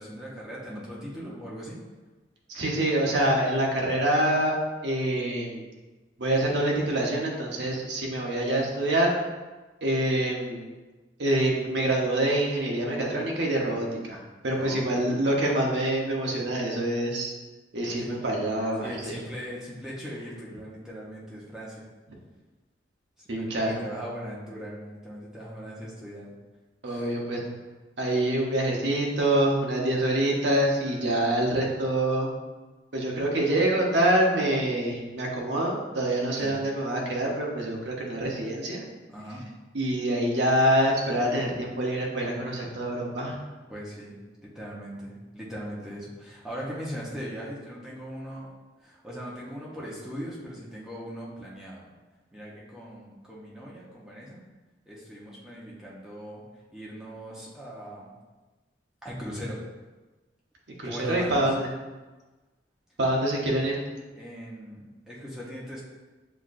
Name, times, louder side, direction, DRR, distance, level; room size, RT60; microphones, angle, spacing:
voice 1, 0.0-1.8 14.5-15.1 17.9-18.1 18.8-21.8 23.2-26.3 26.9-27.2 36.4-36.5 39.1-39.4 43.7-44.1 44.4-48.5 48.8-51.9 52.3-54.4 54.9-56.4 56.7-58.1 59.0-59.6 60.8-61.4 64.2-65.8, equal, 5° right, -6 dB, 0.9 m, -39 dB
voice 2, 2.5-4.5 4.8-5.6 6.2-9.1 9.8-10.7 11.2-14.2 14.4-17.3 17.7-19.1 23.3-23.8 26.8-27.5 28.0-32.3 32.9-38.8 39.7-43.4 60.8-61.7 63.0-63.8, right 1 dB, 75° right, -2 dB, 0.9 m, -26 dB
7.3 x 2.5 x 2.5 m, 1.2 s
head